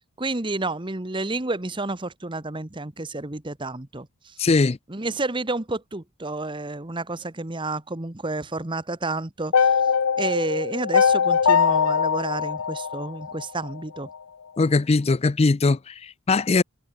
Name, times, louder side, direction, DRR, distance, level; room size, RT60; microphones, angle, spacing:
voice 1, 0.2-4.4 4.9-9.8 10.2-14.1, right 2 dB, 20° right, 1.1 m, -30 dB
voice 2, 4.4-4.8 14.6-16.6, left 3 dB, 25° left, 0.4 m, -20 dB
sound 1, 9.5-13.7, left 6 dB, 75° left, 0.7 m, -21 dB
head